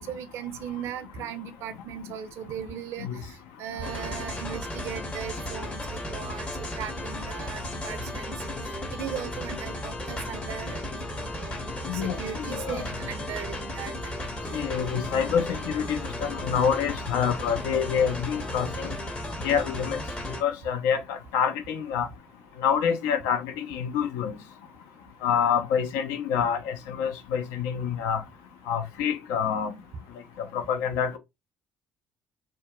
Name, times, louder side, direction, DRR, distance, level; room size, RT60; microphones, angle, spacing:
voice 1, 0.0-3.3 3.6-5.8 6.1-6.5 6.8-10.8 11.1-11.5 11.9-14.1 14.5-14.6, right 9 dB, 60° right, 0.4 m, -38 dB
sound 1, 3.8-20.4, left 1 dB, 25° left, 0.7 m, -35 dB
voice 2, 11.9-12.9 14.5-18.9 19.4-20.0 20.4-22.1 22.6-24.4 25.2-28.2 28.7-29.7 30.4-31.2, left 7 dB, 70° left, 0.4 m, -27 dB
2.6 x 2.2 x 2.2 m
hypercardioid pair, 55°, 5 cm